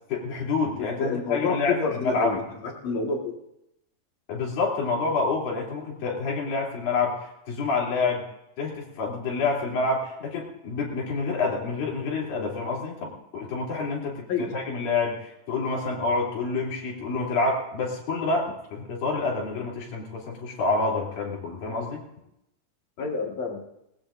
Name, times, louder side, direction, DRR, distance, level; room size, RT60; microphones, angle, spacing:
voice 1, 0.1-2.3 4.3-8.2 8.6-22.0, left 3 dB, 90° left, -4 dB, 4.9 m, -28 dB
voice 2, 1.0-2.4 2.8-3.3 14.3-14.5 23.0-23.6, left 4 dB, 55° left, 0 dB, 2.7 m, -28 dB
19.5 x 19.5 x 2.6 m, 0.83 s
omnidirectional pair, 4.0 m